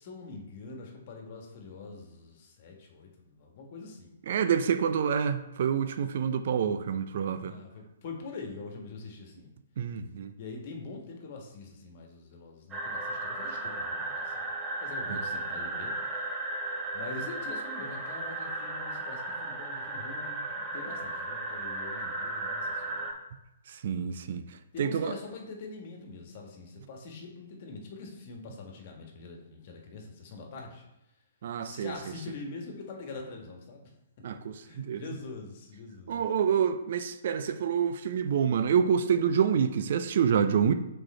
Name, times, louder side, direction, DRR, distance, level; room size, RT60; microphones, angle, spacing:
voice 1, 0.0-4.1 7.4-9.5 10.4-14.5 14.8-15.9 16.9-23.1 24.7-30.8 31.6-33.9 34.6-36.4, left 3 dB, 45° left, 1.6 m, -44 dB
voice 2, 4.3-7.5 9.8-10.3 15.1-15.2 23.7-24.4 24.8-25.1 31.4-31.9 34.2-35.0 36.1-40.7, right 7 dB, 55° right, 0.5 m, -27 dB
sound 1, 12.7-23.1, right 2 dB, 20° right, 1.3 m, -35 dB
6.2 x 4.5 x 4.3 m
figure-of-eight pair, 125°, 0 cm